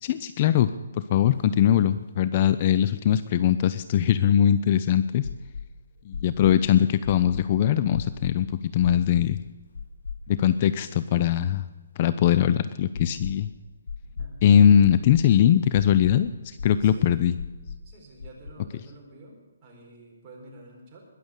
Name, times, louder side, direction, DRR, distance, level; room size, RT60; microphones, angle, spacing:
voice 1, 0.0-5.3 6.1-9.4 10.3-11.6 12.0-13.5 14.4-17.3, left 10 dB, 30° left, 14 dB, 0.5 m, -21 dB
sound 1, 1.4-1.5 1.8-1.9 3.4-4.6 5.2-5.7 6.1-6.6 7.0-7.5 7.9-8.4 8.8-9.3 9.7-10.5 10.8-10.9 12.9-13.5 13.9-14.3 14.8-15.3 15.7-16.2 16.6-17.0 17.4-17.8 18.2-18.5, left 5 dB, 90° left, 2.2 m, -36 dB
voice 2, 14.0-14.4 16.8-17.2 17.8-21.0, right 2 dB, 20° right, -3 dB, 4.5 m, -49 dB
21.0 x 7.0 x 8.1 m, 1.3 s
hypercardioid pair, 165°, 0 cm